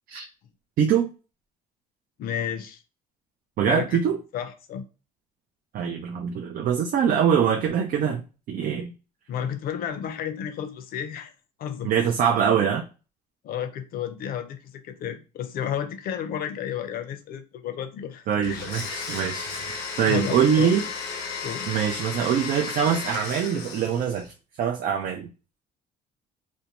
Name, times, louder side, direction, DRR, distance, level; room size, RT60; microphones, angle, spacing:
voice 1, 0.8-1.1 3.6-4.2 5.7-8.2 8.5-8.9 11.8-12.9 18.3-20.8 21.7-24.3 24.6-25.3, right 8 dB, 55° right, 0.4 m, -23 dB
voice 2, 2.2-2.8 3.7-4.0 4.3-4.8 9.3-11.3 11.6-12.1 13.4-18.6 20.0-20.7 21.4-21.7, left 9 dB, 60° left, 0.5 m, -32 dB
Domestic sounds home sounds, 18.4-24.3, left 5 dB, 85° left, 0.8 m, -34 dB
2.5 x 2.2 x 2.9 m
cardioid pair, 110°, 17 cm